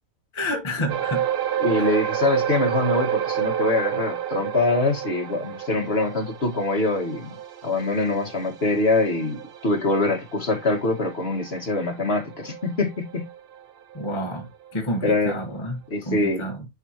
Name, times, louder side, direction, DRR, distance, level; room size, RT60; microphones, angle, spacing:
voice 1, 0.3-1.3 1.8-2.0 13.9-15.8 16.0-16.6, equal, 20° left, 1.4 m, -29 dB
sound 1, 0.9-13.6 13.9-14.1 14.7-14.8, right 10 dB, 55° right, 0.8 m, -30 dB
voice 2, 1.6-7.3 7.6-13.3 15.0-15.3 15.9-16.4, left 2 dB, 50° left, 2.1 m, -24 dB
10.0 x 3.5 x 2.9 m
omnidirectional pair, 1.4 m